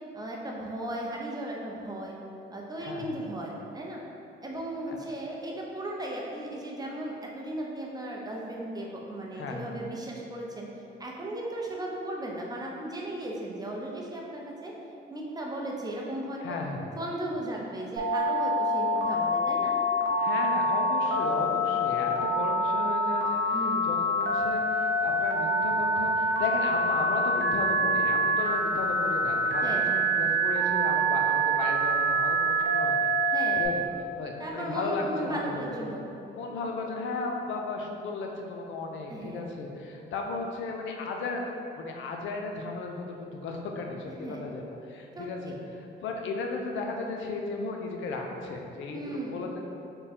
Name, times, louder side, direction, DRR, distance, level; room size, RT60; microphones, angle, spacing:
voice 1, 0.1-2.2 2.5-4.0 4.4-10.7 11.0-14.7 15.1-16.6 17.0-19.7 23.5-23.9 29.6-30.0 33.3-33.7 34.4-36.0 39.1-39.5 44.2-44.4 45.2-45.6 48.9-49.4, right 1 dB, 20° right, -2 dB, 0.6 m, -36 dB
voice 2, 2.8-3.1 4.9-5.0 9.3-9.7 16.4-16.9 20.2-23.6 23.8-29.8 30.1-33.1 33.5-33.8 34.2-35.6 36.2-41.4 41.8-49.6, left 3 dB, 75° left, 2 dB, 0.5 m, -35 dB
Telephone, 18.0-33.7, right 1 dB, 70° right, 0.7 m, -26 dB
3.6 x 2.1 x 4.1 m, 2.8 s
cardioid pair, 90°, 20 cm